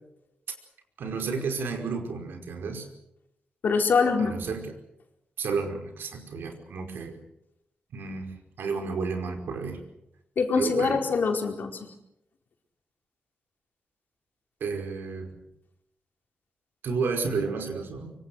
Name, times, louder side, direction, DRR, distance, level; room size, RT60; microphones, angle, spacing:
voice 1, 1.0-2.9 4.2-4.7 5.4-7.2 7.9-9.8 10.5-11.0 14.6-15.4 16.8-18.1, right 4 dB, 85° right, 4 dB, 5.1 m, -31 dB
voice 2, 3.6-4.3 10.4-11.7, left 5 dB, 65° left, 3 dB, 4.5 m, -24 dB
25.5 x 24.0 x 6.5 m, 0.84 s
wide cardioid pair, 115°, 4 cm